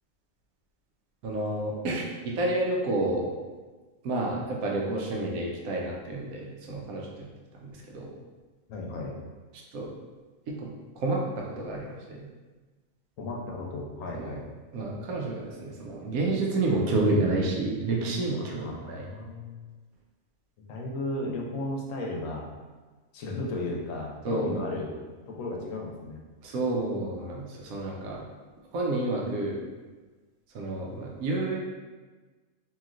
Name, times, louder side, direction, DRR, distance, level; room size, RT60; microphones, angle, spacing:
voice 1, 1.2-2.1 2.3-3.3 4.0-7.3 7.6-8.1 9.7-9.9 10.5-10.7 11.0-12.3 14.1-14.4 14.7-19.1 24.2-24.6 26.4-28.2 28.7-29.6 30.5-31.6, right 2 dB, 85° right, -2 dB, 1.1 m, -29 dB
voice 2, 8.7-9.1 13.2-14.4 18.4-19.7 20.7-22.5 23.1-24.9 25.3-26.2, left 2 dB, 75° left, -1 dB, 0.9 m, -34 dB
3.0 x 2.7 x 2.4 m, 1.3 s
omnidirectional pair, 1.5 m